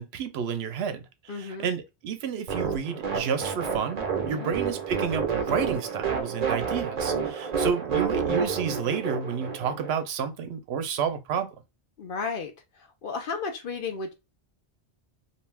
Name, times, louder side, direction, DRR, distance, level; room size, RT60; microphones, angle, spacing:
voice 1, 0.0-11.5, right 7 dB, 75° right, 0.8 m, -30 dB
voice 2, 1.3-1.7 4.3-4.5 12.0-12.5 13.0-14.1, left 5 dB, 60° left, 0.8 m, -33 dB
sound 1, 2.5-9.9, right 6 dB, 45° right, 0.7 m, -29 dB
2.6 x 2.3 x 3.2 m
omnidirectional pair, 1.1 m